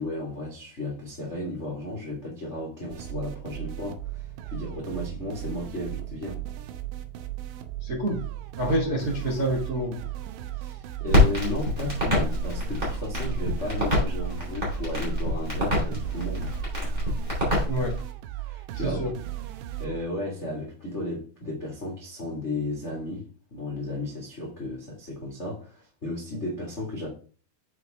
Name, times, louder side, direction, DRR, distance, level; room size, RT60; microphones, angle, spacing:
voice 1, 0.0-6.4 10.5-16.5 17.4-17.7 18.4-19.2 19.8-27.1, left 2 dB, 65° left, 0.7 m, -34 dB
sound 1, 2.9-20.1, right 14 dB, 85° right, 2.2 m, -36 dB
voice 2, 7.8-8.2 8.6-10.0 17.7-18.0 18.8-19.1, right 1 dB, 45° right, 1.2 m, -27 dB
Crackle, 11.1-18.0, left 1 dB, 15° right, 2.6 m, -26 dB
7.5 x 5.5 x 3.5 m
omnidirectional pair, 4.9 m